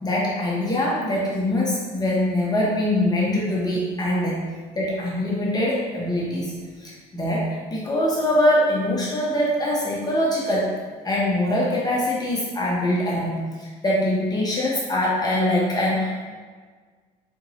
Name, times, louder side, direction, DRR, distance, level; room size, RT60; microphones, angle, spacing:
voice 1, 0.0-4.4 4.7-6.5 6.8-10.7 11.0-16.2, left 1 dB, 25° left, -5 dB, 0.9 m, -23 dB
3.9 x 3.5 x 3.0 m, 1.5 s
cardioid pair, 110°, 17 cm